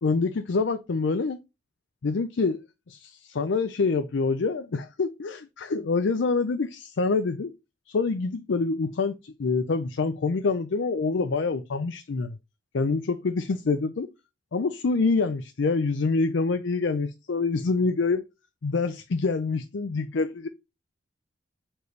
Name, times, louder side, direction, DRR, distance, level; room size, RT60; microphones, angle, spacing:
voice 1, 0.0-1.4 2.0-2.6 2.9-7.5 7.9-12.3 12.7-14.1 14.5-18.3 18.6-20.5, left 4 dB, 80° left, 0.5 m, -26 dB
6.7 x 4.4 x 3.2 m
head